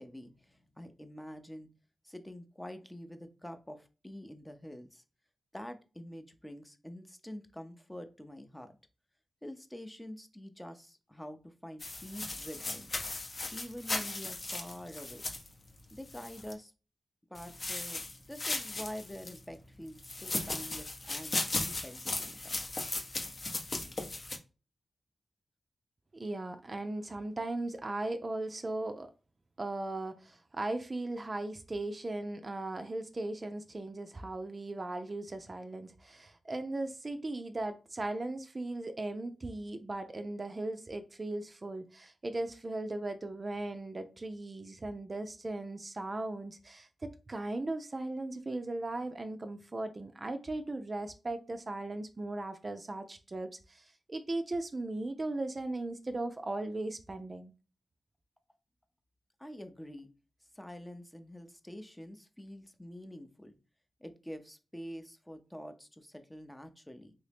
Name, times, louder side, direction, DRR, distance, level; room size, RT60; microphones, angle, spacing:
voice 1, 0.0-1.7 2.0-5.0 5.5-8.8 9.4-12.9 13.5-15.3 15.9-16.7 17.3-18.0 18.3-22.7 59.4-60.1 60.5-63.6 64.0-67.1, equal, 10° left, 0.6 m, -46 dB
sound 1, 11.8-16.5 17.3-19.4 20.0-24.4, left 2 dB, 50° left, 0.7 m, -37 dB
voice 2, 26.1-29.1 29.6-57.5, right 2 dB, 40° right, 0.4 m, -38 dB
3.0 x 2.7 x 3.3 m
cardioid pair, 45°, 0 cm